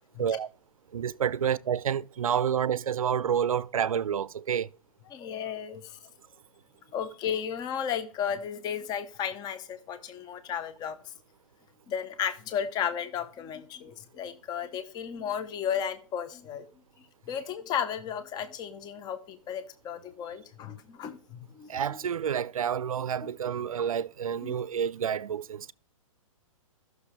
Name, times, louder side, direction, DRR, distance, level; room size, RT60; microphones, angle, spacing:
voice 1, 0.9-4.7 21.7-25.7, right 8 dB, 80° right, 0.5 m, -29 dB
voice 2, 5.1-6.0 6.9-11.0 11.9-16.7 17.0-22.0 23.2-23.3 24.4-24.6, left 8 dB, 25° left, 0.9 m, -34 dB
14.0 x 6.2 x 3.3 m
hypercardioid pair, 125°, 17 cm